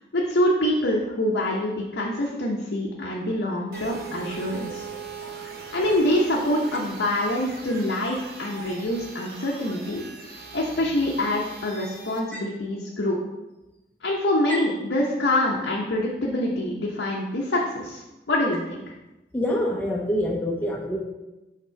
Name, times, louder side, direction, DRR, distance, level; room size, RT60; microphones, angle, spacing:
voice 1, 0.1-4.8 5.7-10.0 10.5-13.2 14.0-18.0 18.3-18.8, left 1 dB, 85° left, -3 dB, 0.9 m, -25 dB
sound 1, 3.7-12.2, right 5 dB, 55° right, 1.0 m, -40 dB
voice 2, 19.3-21.0, left 1 dB, 10° left, -2 dB, 0.6 m, -26 dB
5.9 x 3.7 x 5.6 m, 1.0 s
head